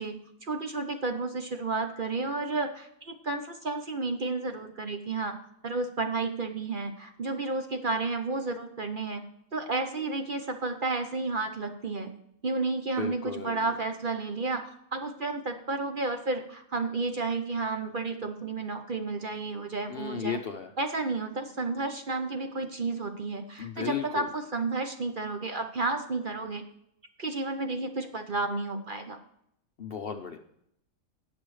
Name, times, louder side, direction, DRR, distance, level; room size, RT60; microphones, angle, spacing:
voice 1, 0.0-5.3 5.6-9.2 9.5-12.1 12.4-20.4 20.8-26.6 27.2-29.2, right 3 dB, 45° right, 6 dB, 0.9 m, -32 dB
voice 2, 13.0-13.6 19.9-20.7 23.6-24.3 29.8-30.4, left 7 dB, 55° left, 6 dB, 0.7 m, -35 dB
18.5 x 6.2 x 3.2 m, 0.74 s
omnidirectional pair, 1.5 m